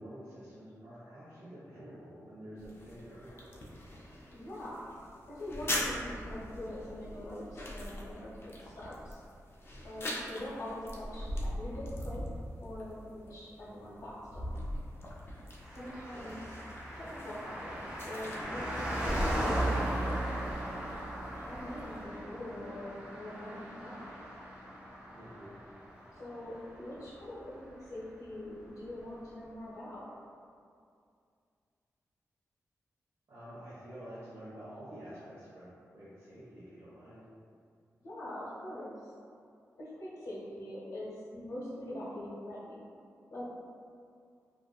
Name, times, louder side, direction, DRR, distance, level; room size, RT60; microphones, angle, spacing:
voice 1, 0.0-3.6 13.7-14.0 16.1-16.3 25.1-25.6 33.3-37.3, equal, 65° right, -12 dB, 0.7 m, -49 dB
sound 1, 2.6-22.0, left 1 dB, 45° left, 0.4 m, -42 dB
voice 2, 4.3-4.9 5.3-9.2 9.8-12.2 12.6-14.6 15.7-16.4 16.9-20.6 21.3-24.1 26.1-30.1 38.0-39.1 39.8-42.8 43.3-43.4, left 1 dB, 65° left, -11 dB, 0.8 m, -43 dB
Car passing by, 15.6-27.4 27.7-27.8, right 1 dB, 20° right, 0.5 m, -37 dB
2.5 x 2.4 x 2.3 m, 2.3 s
wide cardioid pair, 160°, 6 cm